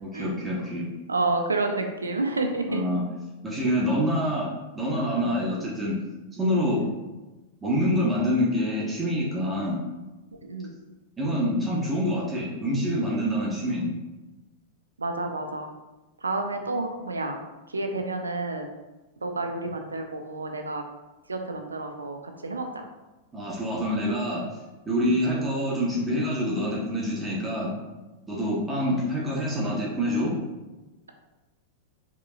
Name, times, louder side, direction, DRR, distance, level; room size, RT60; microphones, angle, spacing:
voice 1, 0.0-0.9 2.7-3.0 3.4-4.5 4.7-6.0 6.3-6.8 7.6-9.8 11.2-13.9 23.3-24.5 24.9-27.7 28.3-30.3, equal, 15° right, -6 dB, 1.1 m, -26 dB
voice 2, 1.1-2.9 5.2-5.3 6.8-7.0 10.5-10.7 15.0-15.7 16.2-17.4 17.7-18.7 19.2-20.8 21.3-22.9 25.0-25.2, right 2 dB, 85° right, 5 dB, 0.5 m, -30 dB
4.9 x 2.9 x 2.4 m, 1.1 s
figure-of-eight pair, 95°, 0 cm